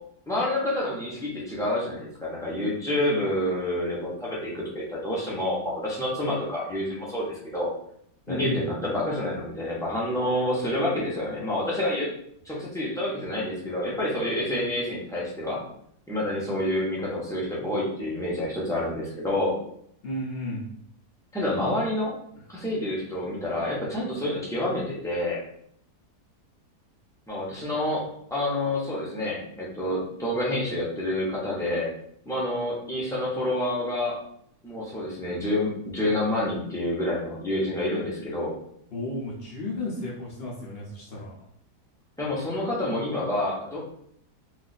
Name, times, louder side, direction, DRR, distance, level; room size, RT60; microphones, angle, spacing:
voice 1, 0.3-7.7 8.3-12.1 12.4-15.6 16.1-19.5 21.3-22.1 22.5-25.4 27.3-31.9 32.3-34.2 34.6-38.5 42.2-43.8, left 1 dB, 5° left, -6 dB, 0.5 m, -28 dB
voice 2, 8.3-8.7 20.0-20.6 38.9-41.3, left 1 dB, 50° left, -5 dB, 0.7 m, -33 dB
2.7 x 2.4 x 4.1 m, 0.70 s
omnidirectional pair, 1.7 m